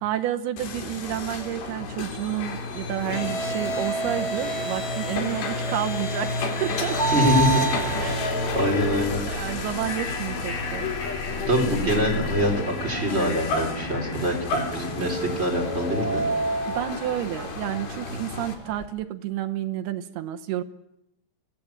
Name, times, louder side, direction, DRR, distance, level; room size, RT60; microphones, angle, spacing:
voice 1, 0.0-7.0 7.5-8.2 9.2-10.9 16.7-20.6, right 12 dB, 75° right, 7 dB, 2.9 m, -30 dB
sound 1, 0.6-18.6, left 2 dB, 75° left, 5.3 m, -31 dB
sound 2, 2.5-15.5, left 4 dB, 45° left, 4.0 m, -37 dB
sound 3, 6.9-18.8, right 3 dB, 5° left, 3.3 m, -32 dB
voice 2, 7.1-8.2 8.5-9.2 11.5-16.2, equal, 15° right, 0 dB, 4.3 m, -24 dB
24.5 x 16.0 x 8.9 m, 0.86 s
omnidirectional pair, 5.0 m